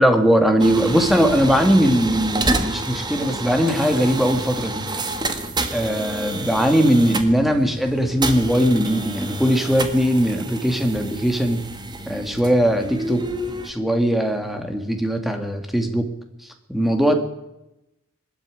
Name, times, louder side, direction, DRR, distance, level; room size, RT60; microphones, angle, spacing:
voice 1, 0.0-4.8 5.7-11.6 12.1-13.2 13.6-16.1 16.7-17.2, equal, ahead, 5 dB, 2.2 m, -19 dB
sound 1, 0.6-13.7, right 2 dB, 20° right, 1.6 m, -29 dB
20.5 x 13.5 x 9.9 m, 0.91 s
head